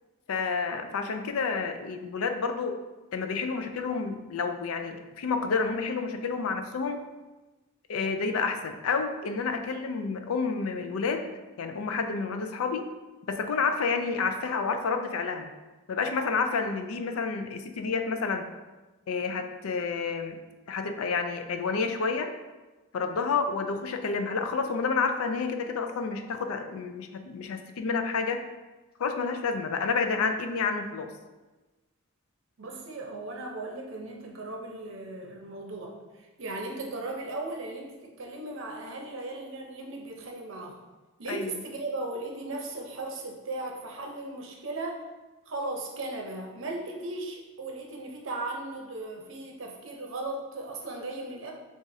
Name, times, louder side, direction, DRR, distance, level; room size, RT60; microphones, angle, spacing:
voice 1, 0.3-2.8 3.1-7.0 7.9-11.3 11.6-12.9 13.3-15.5 15.9-18.5 19.1-20.4 20.7-22.3 22.9-28.4 29.0-31.1 41.3-41.5, left 4 dB, 85° left, 7 dB, 0.4 m, -29 dB
voice 2, 32.6-40.8 41.2-45.0 45.5-51.5, right 2 dB, 65° right, 0 dB, 0.7 m, -37 dB
6.8 x 2.5 x 2.7 m, 1.2 s
head